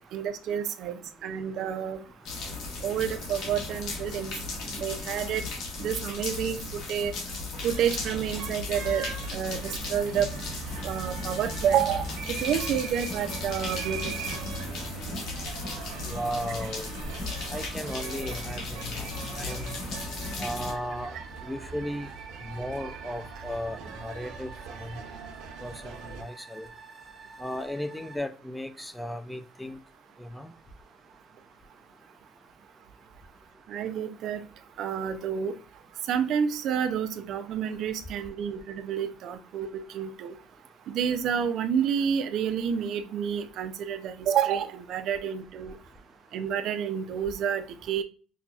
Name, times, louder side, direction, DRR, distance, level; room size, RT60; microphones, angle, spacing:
voice 1, 0.1-2.0 2.8-4.3 4.8-5.4 5.8-6.6 6.9-7.1 7.6-9.0 9.3-9.6 9.9-10.3 10.8-12.1 12.4-14.0 14.3-14.4 33.7-34.4 34.8-35.5 36.1-39.7 39.9-40.3 40.9-45.7 46.3-47.6 47.9-48.0, right 8 dB, 60° right, 0.5 m, -29 dB
sound 1, 2.2-20.7, left 3 dB, 65° left, 1.3 m, -36 dB
sound 2, 7.7-26.2, right 5 dB, 85° right, 0.8 m, -40 dB
voice 2, 16.1-17.0 17.5-19.8 20.4-22.1 22.4-24.5 24.8-25.0 25.6-26.7 27.4-29.8 30.2-30.5, equal, 5° left, 0.3 m, -36 dB
sound 3, 19.9-28.2, right 4 dB, 20° right, 0.9 m, -48 dB
5.4 x 2.3 x 2.4 m
cardioid pair, 130°, 0 cm